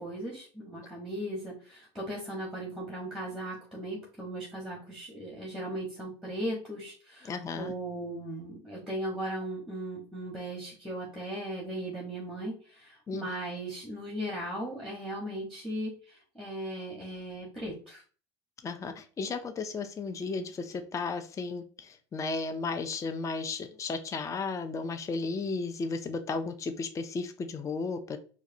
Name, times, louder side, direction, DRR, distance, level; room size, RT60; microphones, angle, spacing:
voice 1, 0.0-18.0, right 1 dB, ahead, -2 dB, 1.2 m, -37 dB
voice 2, 7.2-7.7 13.1-13.3 18.6-28.2, left 4 dB, 20° left, 8 dB, 0.4 m, -34 dB
4.6 x 2.2 x 2.7 m, 0.40 s
hypercardioid pair, 80°, 15 cm